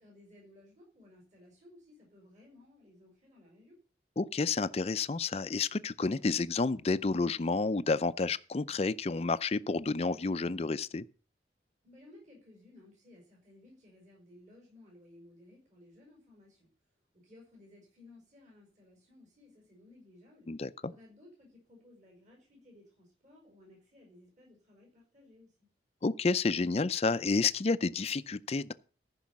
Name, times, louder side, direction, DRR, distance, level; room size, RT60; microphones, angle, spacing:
voice 1, 0.0-3.7 11.8-16.7 17.1-20.5 20.9-25.5, left 1 dB, 45° right, 5.4 m, -58 dB
voice 2, 4.2-11.0 20.5-20.9 26.0-28.7, left 4 dB, 35° left, 0.5 m, -30 dB
14.5 x 5.5 x 7.3 m
head